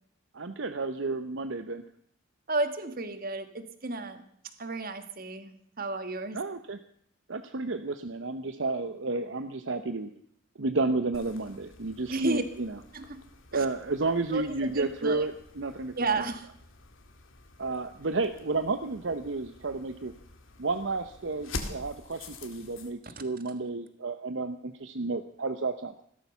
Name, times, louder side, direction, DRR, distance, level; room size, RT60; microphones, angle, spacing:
voice 1, 0.3-1.8 6.3-6.8 7.3-10.1 10.6-12.8 13.5-15.9 17.6-20.1 20.6-26.0, right 3 dB, 65° right, 9 dB, 0.8 m, -31 dB
voice 2, 2.5-4.2 4.6-6.4 12.1-12.4 12.9-13.2 13.5-13.6 14.3-15.3 15.9-16.5 23.0-23.2, right 3 dB, 45° right, 9 dB, 1.6 m, -32 dB
sound 1, 11.1-22.9, left 3 dB, 80° left, 2.1 m, -46 dB
16.0 x 13.0 x 6.9 m, 0.66 s
head